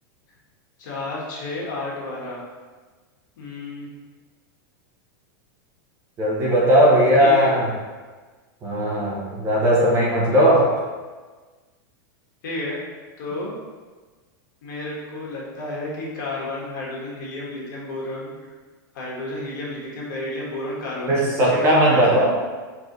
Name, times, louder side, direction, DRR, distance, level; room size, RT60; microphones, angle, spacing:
voice 1, 0.8-2.4 3.4-3.9 7.2-7.5 12.4-12.8 13.2-13.5 14.6-18.3 18.9-21.2 21.4-22.2, left 2 dB, 60° left, -4 dB, 1.4 m, -31 dB
voice 2, 6.2-7.7 8.6-10.7 21.1-22.3, equal, 20° right, -4 dB, 0.8 m, -17 dB
4.8 x 2.8 x 3.9 m, 1.4 s
supercardioid pair, 170°, 12 cm